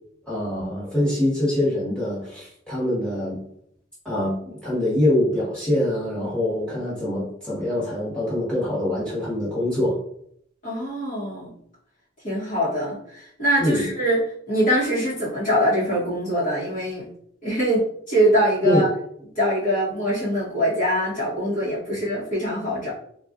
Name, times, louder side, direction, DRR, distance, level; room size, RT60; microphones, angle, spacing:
voice 1, 0.3-3.4 4.0-10.0 13.6-13.9 18.6-18.8 21.9-22.0, left 1 dB, 5° left, -9 dB, 1.3 m, -24 dB
voice 2, 10.6-11.5 12.2-14.2 14.5-17.1 17.4-18.9 19.3-22.9, equal, 40° left, -9 dB, 1.1 m, -23 dB
3.9 x 2.4 x 2.5 m, 0.69 s
head